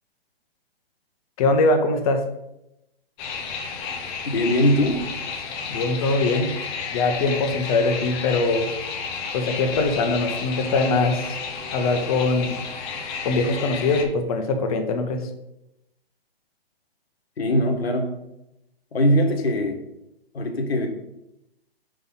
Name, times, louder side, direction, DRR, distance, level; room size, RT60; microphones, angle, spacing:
voice 1, 1.4-2.2 5.7-6.5 6.9-8.7 9.3-11.4 11.7-12.5 13.2-15.3, left 3 dB, 35° left, 6 dB, 0.9 m, -22 dB
sound 1, 3.2-14.1, left 5 dB, 15° left, 0.5 m, -32 dB
voice 2, 4.3-5.0 17.4-18.1 18.9-19.8 20.3-20.9, equal, 80° left, 4 dB, 1.5 m, -21 dB
5.7 x 4.0 x 5.5 m, 0.88 s
hypercardioid pair, 140°, 30 cm